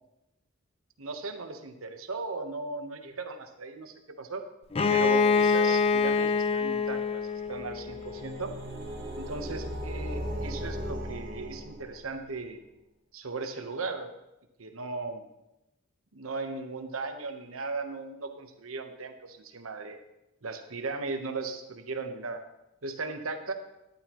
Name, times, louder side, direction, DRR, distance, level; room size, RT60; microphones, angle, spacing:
voice 1, 1.0-4.4 4.9-8.5 9.1-12.6 13.1-14.1 14.6-15.2 16.1-20.0 20.4-22.4 22.8-23.5, right 3 dB, 85° right, 6 dB, 1.1 m, -37 dB
Bowed string instrument, 4.7-8.4, left 5 dB, 30° left, 0.5 m, -25 dB
sound 1, 7.5-12.2, equal, 45° right, 3.1 m, -37 dB
13.0 x 11.0 x 3.1 m, 0.91 s
head